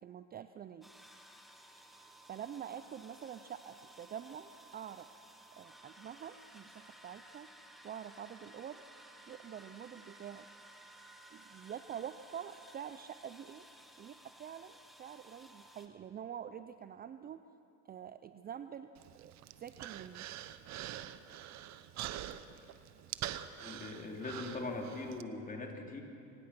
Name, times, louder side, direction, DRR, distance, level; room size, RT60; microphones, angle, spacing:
voice 1, 0.0-0.9 1.9-5.1 5.6-7.5 7.8-8.8 9.3-10.5 11.3-13.7 14.0-17.4 17.8-18.9 19.1-19.3 19.6-20.3, right 9 dB, 25° right, 11 dB, 0.5 m, -46 dB
sound 1, 0.8-15.9, right 1 dB, ahead, 1.8 m, -57 dB
Human voice, 19.0-25.2, right 12 dB, 50° right, 0.9 m, -45 dB
voice 2, 23.6-26.0, left 2 dB, 20° left, 1 dB, 3.4 m, -41 dB
24.5 x 19.0 x 6.0 m, 2.7 s
supercardioid pair, 105°, 37 cm